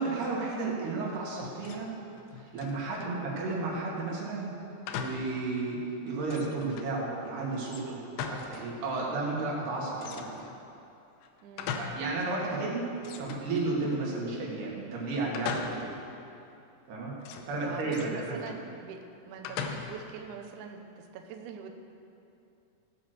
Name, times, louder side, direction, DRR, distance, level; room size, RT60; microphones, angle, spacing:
voice 1, 0.0-1.9 2.4-4.5 5.0-10.4 11.8-12.8 13.2-15.9 16.9-17.1 17.5-18.4, right 3 dB, 70° right, -4 dB, 4.1 m, -33 dB
sound 1, 1.3-1.9 2.2-3.2 4.9-5.3 5.8-5.9 6.3-7.0 7.6-8.7 9.0-9.1 10.0-10.6 11.2-12.1 12.5-12.6 13.0-14.1 15.3-16.1 17.2-18.6 19.4-20.1, left 6 dB, 85° left, 2.8 m, -39 dB
voice 2, 11.4-12.0 12.5-12.9 17.6-19.0 19.3-21.7, right 6 dB, 85° right, 4 dB, 1.7 m, -44 dB
17.5 x 6.2 x 6.7 m, 2.7 s
omnidirectional pair, 4.8 m